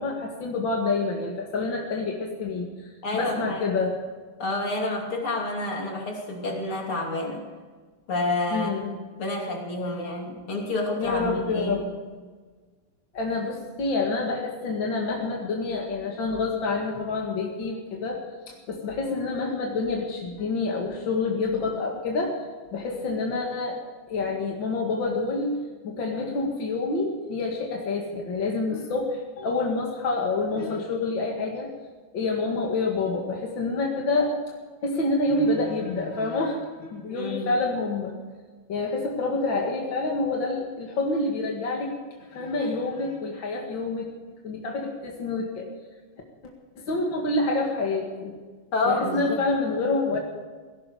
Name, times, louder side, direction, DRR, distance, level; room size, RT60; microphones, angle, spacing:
voice 1, 0.0-2.7 3.1-3.9 8.5-8.9 11.0-11.8 13.1-18.2 18.5-22.4 22.7-23.8 24.1-25.6 25.8-31.7 32.1-34.3 34.8-38.1 38.7-41.9 42.3-44.1 44.4-45.7 46.8-48.3 48.9-50.2, left 3 dB, 65° left, 0 dB, 2.7 m, -27 dB
voice 2, 3.0-3.8 4.4-7.5 8.1-8.7 9.2-11.9 37.1-37.5 48.7-49.4, left 2 dB, 85° left, 0 dB, 3.8 m, -29 dB
18.0 x 16.5 x 5.0 m, 1.4 s
omnidirectional pair, 2.3 m